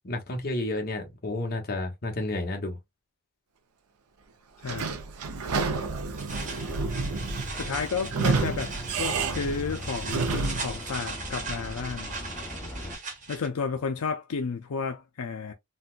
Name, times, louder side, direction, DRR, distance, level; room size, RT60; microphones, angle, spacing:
voice 1, 0.0-2.8, left 2 dB, 45° left, 1.0 m, -31 dB
voice 2, 4.6-5.0 7.6-12.1 13.3-15.5, left 5 dB, 75° left, 0.5 m, -32 dB
Sliding door / Squeak, 4.6-10.7, right 4 dB, 85° right, 0.6 m, -30 dB
sound 1, 6.2-13.5, right 4 dB, 35° right, 1.0 m, -39 dB
sound 2, 6.3-13.0, left 1 dB, 10° left, 0.9 m, -40 dB
4.0 x 2.2 x 2.4 m
head